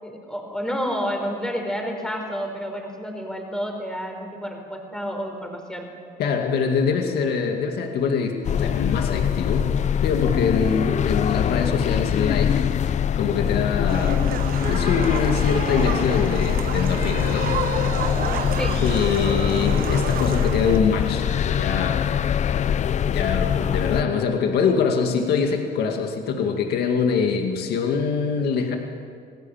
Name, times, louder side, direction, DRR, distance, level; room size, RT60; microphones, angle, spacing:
voice 1, 0.0-5.9 18.6-18.8, equal, 5° left, 2 dB, 4.5 m, -30 dB
voice 2, 6.2-9.8 10.0-14.4 14.7-18.0 18.8-22.1 23.1-28.8, left 5 dB, 70° left, 3 dB, 2.2 m, -24 dB
sound 1, 8.4-24.0, left 8 dB, 45° left, 0.7 m, -23 dB
sound 2, 13.9-20.8, right 9 dB, 60° right, 1.3 m, -31 dB
28.0 x 18.5 x 7.5 m, 2.3 s
cardioid pair, 110°, 17 cm